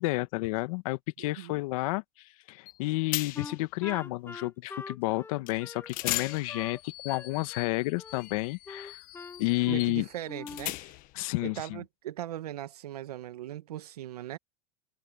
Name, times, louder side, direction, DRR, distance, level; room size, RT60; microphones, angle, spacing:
voice 1, 0.0-9.0 9.4-10.1 11.1-11.8, left 21 dB, 65° left, 1.5 m, -31 dB
voice 2, 1.2-1.6 9.7-10.9 11.4-14.4, right 13 dB, 90° right, 1.8 m, -39 dB
sound 1, 2.7-2.8 3.1-3.6 5.5-5.6 5.9-11.2, left 18 dB, 45° left, 1.3 m, -38 dB
Wind instrument woodwind instrument, 3.3-6.8 7.1-8.2 8.7-9.9 10.3-10.7, left 4 dB, 10° left, 2.1 m, -44 dB
supercardioid pair, 125°, 19 cm